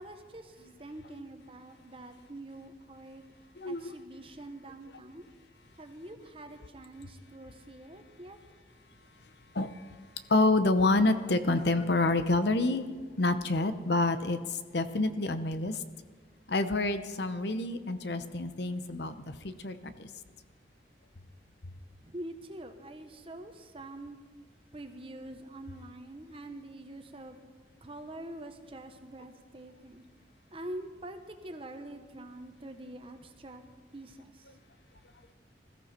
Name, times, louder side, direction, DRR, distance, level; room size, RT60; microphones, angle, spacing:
voice 1, 0.0-3.2 3.6-5.3 5.8-8.4 22.0-24.3 24.7-27.4 27.8-30.0 30.5-33.6 33.9-34.5, right 1 dB, 30° right, 7 dB, 1.1 m, -45 dB
voice 2, 3.6-3.9 9.5-9.7 10.3-15.8 16.5-20.1, left 2 dB, 65° left, 11 dB, 0.8 m, -28 dB
21.0 x 14.0 x 4.4 m, 1.4 s
head